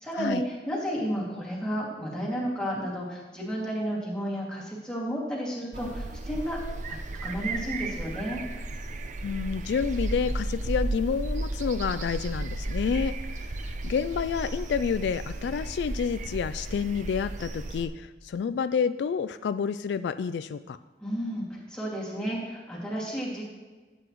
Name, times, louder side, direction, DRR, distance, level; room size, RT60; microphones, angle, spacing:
voice 1, 0.0-6.6 6.9-8.4 21.0-23.4, equal, 5° left, -5 dB, 2.3 m, -32 dB
sound 1, 5.7-17.9, right 2 dB, 45° right, 0.6 m, -34 dB
voice 2, 9.2-20.8, left 6 dB, 75° left, 12 dB, 0.3 m, -29 dB
12.5 x 8.1 x 3.1 m, 1.3 s
head